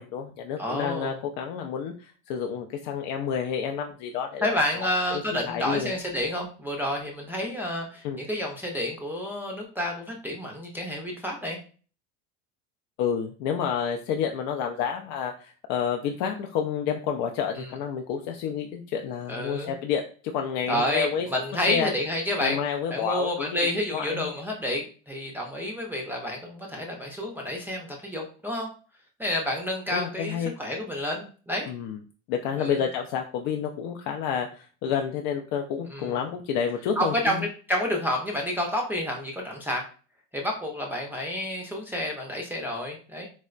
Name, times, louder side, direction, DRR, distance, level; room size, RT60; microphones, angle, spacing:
voice 1, 0.0-4.5 4.8-5.2 5.5-5.9 8.0-8.2 13.0-20.0 20.3-21.3 21.7-21.9 22.4-23.6 23.9-24.3 29.9-30.5 31.7-32.0 32.3-37.4, left 7 dB, 65° left, 3 dB, 0.5 m, -29 dB
voice 2, 0.6-1.2 4.4-11.6 17.6-17.7 19.3-19.7 20.7-22.6 22.9-28.7 29.2-31.7 32.6-32.8 35.9-36.2 37.0-39.8 40.3-43.3, left 1 dB, 5° right, -2 dB, 0.4 m, -29 dB
4.3 x 2.0 x 2.4 m, 0.39 s
supercardioid pair, 120°, 35 cm